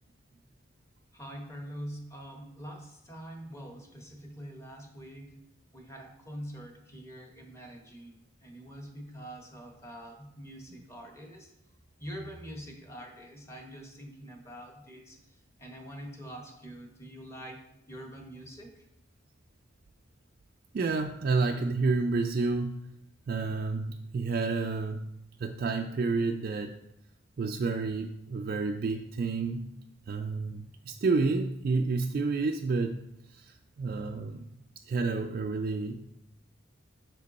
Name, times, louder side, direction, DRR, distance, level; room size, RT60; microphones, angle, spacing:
voice 1, 1.1-5.4 5.7-11.5 12.0-15.2 15.6-18.9, equal, 15° left, 3 dB, 0.9 m, -45 dB
voice 2, 20.7-22.8 23.3-25.0 25.4-26.8 27.4-29.7 30.1-33.0 33.3-34.5 34.9-36.0, right 4 dB, 50° right, 4 dB, 0.3 m, -30 dB
6.1 x 5.2 x 4.1 m, 0.80 s
head